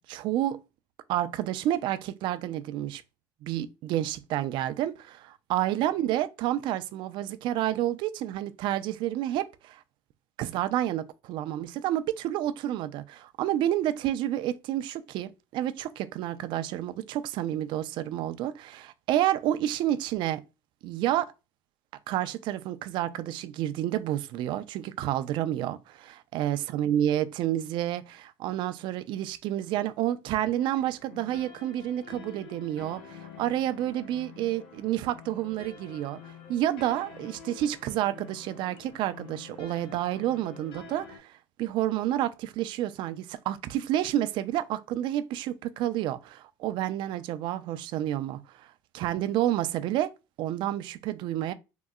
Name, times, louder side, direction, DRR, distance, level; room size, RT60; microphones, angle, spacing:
voice 1, 0.1-0.6 1.1-3.0 3.4-9.8 10.4-20.4 20.8-21.3 22.1-36.2 36.5-50.1 50.4-51.5, right 12 dB, 60° right, 0.4 m, -29 dB
sound 1, 30.5-41.2, left 6 dB, 70° left, 0.9 m, -48 dB
3.7 x 2.0 x 2.3 m
supercardioid pair, 100°, 9 cm